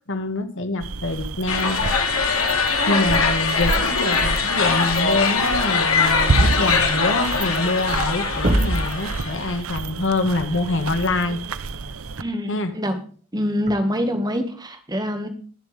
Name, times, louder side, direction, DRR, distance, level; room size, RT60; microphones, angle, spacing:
voice 1, 0.1-1.8 2.9-11.4 12.5-12.7, left 2 dB, 60° left, 2.0 m, -25 dB
sound 1, 0.8-12.2, right 3 dB, 70° right, 0.8 m, -29 dB
sound 2, 1.5-9.6, left 4 dB, 75° left, 2.7 m, -22 dB
sound 3, 8.3-9.0 10.7-10.8 12.6-12.8 13.6-13.7, right 1 dB, 35° right, 1.9 m, -22 dB
voice 2, 12.2-13.0 13.3-15.3, equal, 20° right, 1.9 m, -25 dB
21.5 x 7.3 x 3.5 m
head